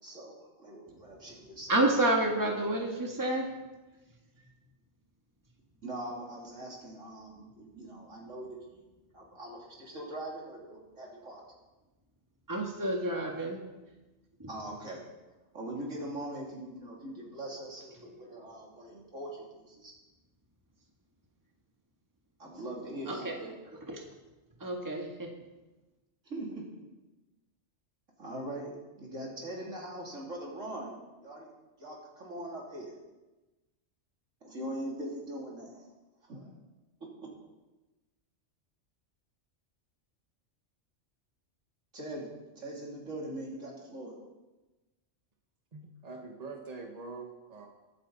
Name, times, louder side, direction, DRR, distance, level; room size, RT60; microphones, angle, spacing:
voice 1, 0.0-1.8 4.4-4.5 5.8-8.8 9.1-11.4 14.5-15.0 15.5-19.9 22.4-23.5 26.2-26.8 28.2-31.5 31.8-32.9 34.4-35.9 36.2-36.5 37.0-37.3 41.9-44.1, right 1 dB, 80° right, -3 dB, 3.5 m, -42 dB
voice 2, 1.7-3.5 12.5-13.6 14.4-14.5 23.1-23.3 23.9-24.0 24.6-25.3, right 1 dB, 15° right, 0 dB, 1.7 m, -29 dB
voice 3, 45.7-47.7, right 3 dB, 30° right, 2 dB, 1.5 m, -44 dB
23.0 x 8.6 x 4.1 m, 1.1 s
omnidirectional pair, 1.3 m